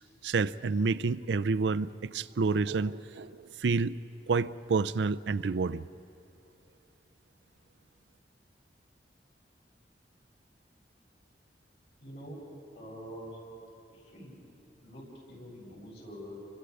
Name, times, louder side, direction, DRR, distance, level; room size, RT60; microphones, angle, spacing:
voice 1, 0.2-4.0 4.3-5.8, right 4 dB, 80° right, 13 dB, 0.5 m, -29 dB
voice 2, 12.0-12.4 12.7-13.4 13.9-14.4 14.8-16.4, equal, 70° left, -4 dB, 7.7 m, -45 dB
30.0 x 25.0 x 5.0 m, 2.8 s
head